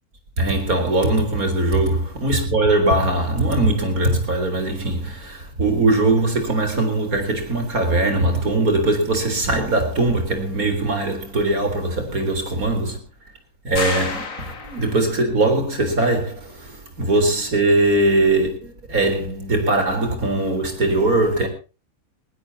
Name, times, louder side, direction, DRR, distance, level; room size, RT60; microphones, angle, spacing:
voice 1, 0.4-13.0 13.6-21.5, right 2 dB, 80° right, 4.3 m, -21 dB
sound 1, 13.8-15.2, left 4 dB, 65° left, 2.4 m, -29 dB
20.5 x 19.0 x 2.9 m
omnidirectional pair, 1.5 m